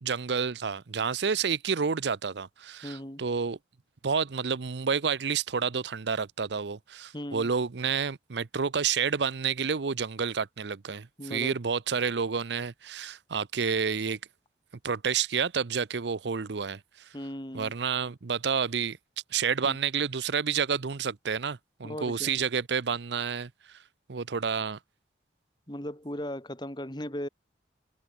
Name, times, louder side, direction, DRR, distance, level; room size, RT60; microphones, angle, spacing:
voice 1, 0.0-3.6 4.0-14.2 14.8-16.8 17.5-19.0 19.3-23.5 24.1-24.8, right 6 dB, 70° right, 0.7 m, -29 dB
voice 2, 2.8-3.2 7.1-7.5 11.2-11.5 17.1-17.7 19.6-19.8 21.8-22.4 25.7-27.3, equal, 25° left, 3.4 m, -37 dB
open air
head